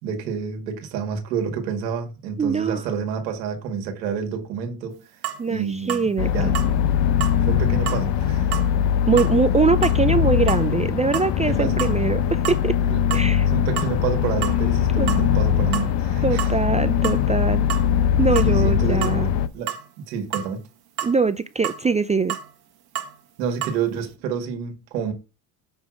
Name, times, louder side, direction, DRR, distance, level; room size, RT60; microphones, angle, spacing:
voice 1, 0.0-5.0 5.5-6.6 7.4-8.5 11.4-11.8 12.8-16.5 18.4-19.7 20.0-20.6 23.4-25.1, right 6 dB, 85° right, 1.9 m, -29 dB
voice 2, 2.4-2.8 5.4-6.5 9.1-12.7 13.1-13.5 15.0-15.1 16.2-17.7 18.2-19.3 21.0-22.4, right 5 dB, 15° right, 0.4 m, -22 dB
sound 1, 5.2-5.4 5.9-6.1 6.5-6.7 7.2-7.4 7.9-8.0 8.5-8.7 9.2-9.4 9.8-10.0 10.5-10.7 11.1-11.3 11.7-12.1 12.4-12.6 13.1-13.3 13.8-13.9 14.4-14.6 15.1-15.3 15.7-15.9 16.4-16.6 17.0-17.2 17.7-17.9 18.4-18.5 19.0-19.2 19.7-19.9 20.3-20.5 21.0-21.2 21.6-21.8 22.3-22.5 22.9-23.1 23.6-23.8, right 11 dB, 50° right, 1.5 m, -30 dB
sound 2, 6.2-19.5, left 9 dB, 60° left, 0.8 m, -21 dB
7.1 x 3.5 x 6.0 m
hypercardioid pair, 65°, 49 cm